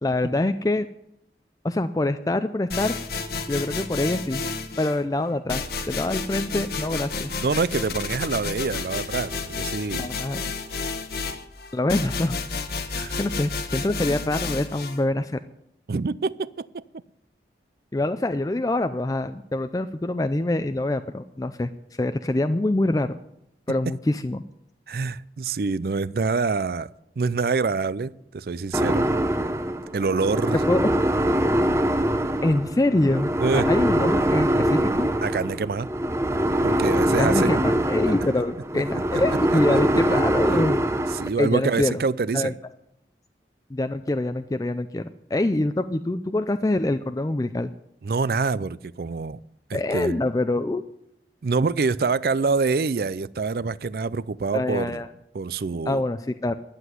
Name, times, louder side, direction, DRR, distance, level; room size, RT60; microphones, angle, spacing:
voice 1, 0.0-0.9 1.6-3.0 3.5-4.4 4.8-7.3 10.0-10.5 11.7-12.4 13.2-15.4 17.9-21.7 22.0-23.2 23.7-24.4 30.7-30.9 32.4-35.1 37.2-40.8 41.4-42.0 42.3-42.5 43.7-47.7 49.7-50.8 54.5-55.1 55.9-56.6, left 2 dB, 20° left, 10 dB, 0.4 m, -25 dB
sound 1, 2.7-5.0 5.5-15.0, left 4 dB, 60° left, 1.1 m, -31 dB
voice 2, 7.4-10.1 13.0-13.2 15.9-16.8 24.9-26.9 27.2-29.1 29.9-30.6 33.4-33.7 35.2-35.9 36.6-37.7 38.7-38.8 39.1-39.2 39.5-39.8 41.1-42.6 48.0-49.4 49.7-50.3 51.4-55.0 55.3-56.0, right 4 dB, 60° right, 19 dB, 0.4 m, -26 dB
sound 2, 28.7-41.3, right 1 dB, 15° right, 0.7 m, -23 dB
11.5 x 8.0 x 9.5 m, 0.79 s
head